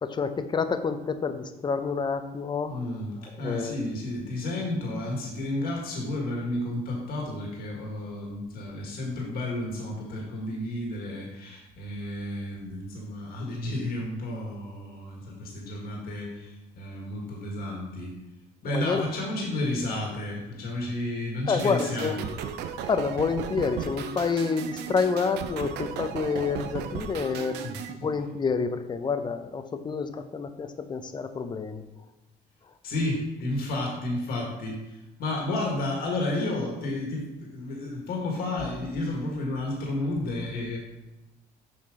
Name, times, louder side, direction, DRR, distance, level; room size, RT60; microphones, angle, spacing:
voice 1, 0.0-2.8 3.3-3.8 18.7-19.0 21.5-22.1 22.9-27.6 27.9-31.8, left 5 dB, 25° left, 9 dB, 0.6 m, -28 dB
voice 2, 2.7-3.1 3.4-18.1 18.6-22.3 27.6-27.7 28.0-28.1 32.8-34.8 35.2-40.8, left 1 dB, 65° left, -1 dB, 1.8 m, -31 dB
sound 1, 21.6-27.9, right 8 dB, 80° right, 0.6 m, -36 dB
7.3 x 4.4 x 5.0 m, 1.0 s
cardioid pair, 110°, 17 cm